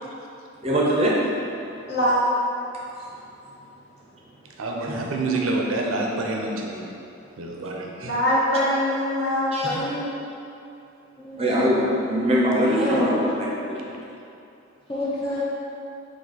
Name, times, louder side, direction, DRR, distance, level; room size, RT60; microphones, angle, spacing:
voice 1, 0.6-1.2 4.9-5.1 9.5-9.8 11.4-13.9, equal, 30° right, -4 dB, 0.5 m, -22 dB
voice 2, 4.6-6.9 7.4-8.2, right 2 dB, 85° right, 0 dB, 0.5 m, -27 dB
voice 3, 8.0-10.1, left 1 dB, 50° left, -9 dB, 1.2 m, -23 dB
voice 4, 11.2-12.0 12.8-13.1 14.9-15.4, left 2 dB, 25° left, -6 dB, 0.3 m, -28 dB
4.2 x 2.7 x 4.0 m, 2.7 s
head